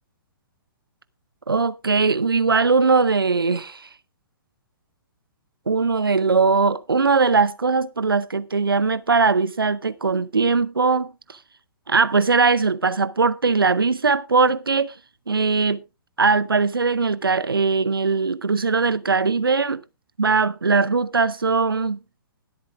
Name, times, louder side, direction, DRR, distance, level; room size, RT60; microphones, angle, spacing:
voice 1, 1.5-3.9 5.7-11.4 11.9-14.9 15.3-15.8 16.2-19.8 20.2-22.0, right 4 dB, 80° right, 0.6 m, -20 dB
21.0 x 8.2 x 2.5 m
figure-of-eight pair, 120°, 12 cm